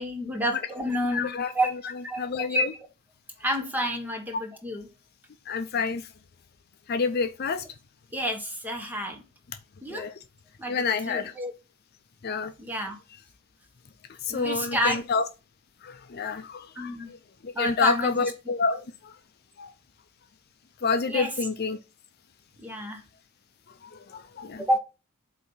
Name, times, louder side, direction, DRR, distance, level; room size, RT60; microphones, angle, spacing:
voice 1, 0.0-1.3 1.5-1.7 2.0-2.6 3.4-4.9 8.1-9.2 9.8-10.1 10.6-11.5 12.6-13.0 14.3-15.0 16.7-17.1 17.5-18.3 21.1-21.4 22.6-23.0 24.6-24.8, equal, 10° right, 1.2 m, -29 dB
voice 2, 1.1-1.5 2.2-2.7 5.5-6.0 6.9-7.6 9.9-10.1 10.7-11.3 12.2-12.5 14.2-15.2 15.8-16.9 17.4-18.8 19.6-19.7 20.8-21.8 23.8-24.6, left 5 dB, 45° left, 0.5 m, -28 dB
7.9 x 2.8 x 5.5 m
head